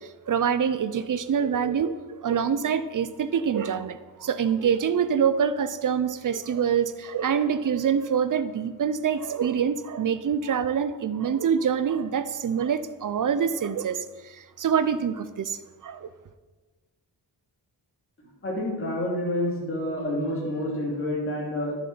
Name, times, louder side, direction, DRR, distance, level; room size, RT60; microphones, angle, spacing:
voice 1, 0.0-16.1, right 7 dB, 50° right, 13 dB, 0.5 m, -25 dB
voice 2, 18.2-21.8, left 1 dB, 30° left, -4 dB, 3.0 m, -29 dB
11.0 x 6.9 x 5.5 m, 1.3 s
wide cardioid pair, 175°, 42 cm